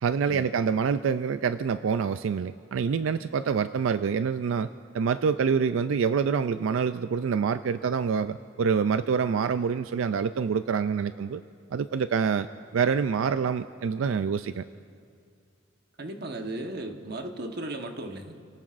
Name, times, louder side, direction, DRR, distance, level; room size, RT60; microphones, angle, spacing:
voice 1, 0.0-4.7 4.9-11.4 11.7-12.5 12.7-14.6, right 6 dB, 90° right, 12 dB, 0.4 m, -26 dB
voice 2, 16.0-18.3, right 1 dB, 55° right, 4 dB, 1.2 m, -36 dB
29.5 x 18.0 x 2.5 m, 2.2 s
head